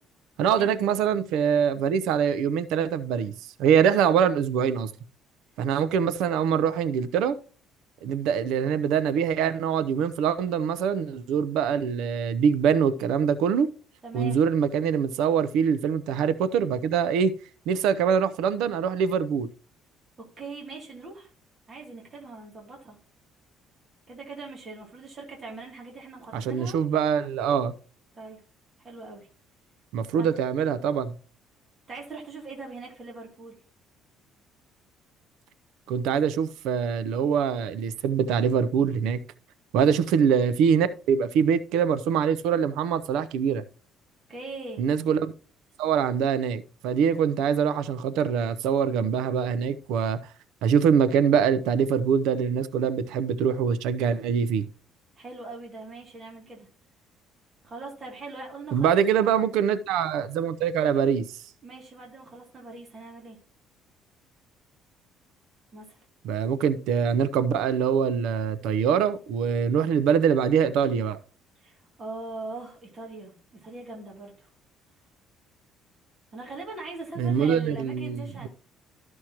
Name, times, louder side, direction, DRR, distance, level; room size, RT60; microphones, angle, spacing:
voice 1, 0.4-3.3 3.6-4.9 5.6-7.4 8.0-13.7 14.1-17.3 17.7-19.5 26.3-27.7 29.9-31.1 35.9-39.2 39.7-43.6 44.8-45.3 45.8-50.2 50.6-54.6 58.7-61.3 66.2-71.2 77.2-78.5, right 7 dB, 75° right, 0.6 m, -24 dB
voice 2, 14.0-14.4 20.2-21.3 21.7-23.0 24.1-26.8 28.1-28.4 28.8-29.3 30.2-30.3 31.9-33.6 39.8-40.1 44.3-44.8 55.2-56.7 57.6-59.0 61.6-63.4 65.7-66.0 71.6-74.5 76.3-78.5, right 3 dB, 20° right, 2.7 m, -41 dB
13.0 x 6.2 x 2.9 m
cardioid pair, 170°, 0 cm